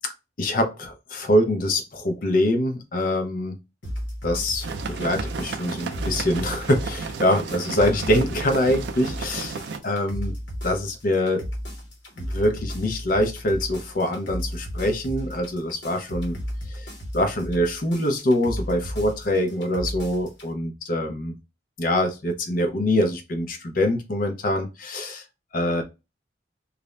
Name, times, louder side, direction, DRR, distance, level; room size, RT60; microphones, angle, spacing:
voice 1, 0.4-3.6 4.2-9.6 9.8-10.4 10.6-11.5 12.2-16.4 16.7-21.3 21.8-25.2 25.5-25.8, left 1 dB, 50° left, 0.5 m, -24 dB
sound 1, 3.8-20.5, equal, 85° left, 0.9 m, -34 dB
sound 2, 4.6-9.8, right 5 dB, 65° right, 0.3 m, -33 dB
2.4 x 2.0 x 3.1 m
head